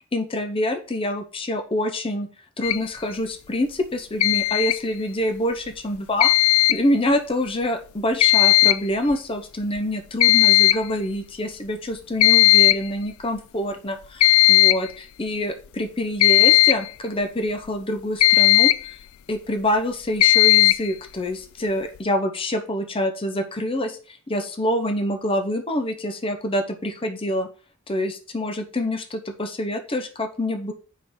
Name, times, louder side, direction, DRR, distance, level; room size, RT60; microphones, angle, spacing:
voice 1, 0.1-2.3 2.6-6.3 6.7-18.7 19.3-24.0 24.3-27.5 27.9-30.7, left 1 dB, 25° left, 6 dB, 0.8 m, -26 dB
sound 1, 2.6-2.8 4.2-4.8 6.2-6.8 8.2-8.8 9.1-9.2 9.8-9.9 10.2-10.8 12.2-12.8 14.2-14.9 16.2-16.9 18.2-18.9 20.2-20.9, left 18 dB, 75° left, 0.4 m, -16 dB
5.1 x 5.0 x 5.9 m, 0.38 s
head